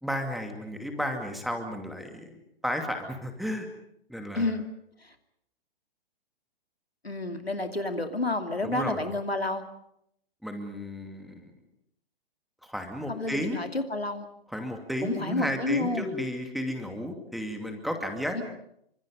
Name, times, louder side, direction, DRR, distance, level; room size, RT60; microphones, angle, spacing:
voice 1, 0.0-3.7 4.1-4.5 8.6-9.0 10.4-11.5 12.6-13.6 14.5-18.4, equal, ahead, 4 dB, 2.5 m, -33 dB
voice 2, 4.3-4.7 5.0-5.1 7.0-9.7 13.1-14.3 15.0-16.1 18.3-18.4, left 2 dB, 85° left, 6 dB, 2.7 m, -30 dB
27.5 x 25.5 x 5.5 m, 0.75 s
figure-of-eight pair, 120°, 30 cm